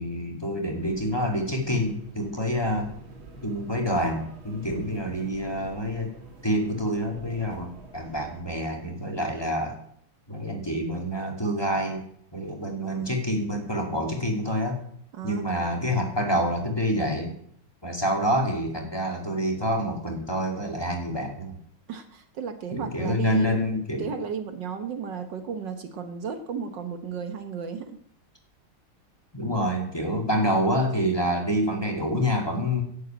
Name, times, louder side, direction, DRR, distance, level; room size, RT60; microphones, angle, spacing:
voice 1, 0.0-2.9 3.4-6.1 6.4-9.8 10.3-12.0 12.3-14.8 15.2-17.3 17.8-21.6 22.7-24.1 29.3-32.8, equal, 10° left, 1 dB, 2.4 m, -27 dB
sound 1, 0.8-8.4, right 2 dB, 85° right, 3.0 m, -46 dB
voice 2, 12.8-13.1 15.1-15.4 21.9-23.6 24.0-28.0, right 6 dB, 65° right, 8 dB, 1.7 m, -34 dB
11.0 x 8.1 x 9.0 m, 0.66 s
omnidirectional pair, 2.2 m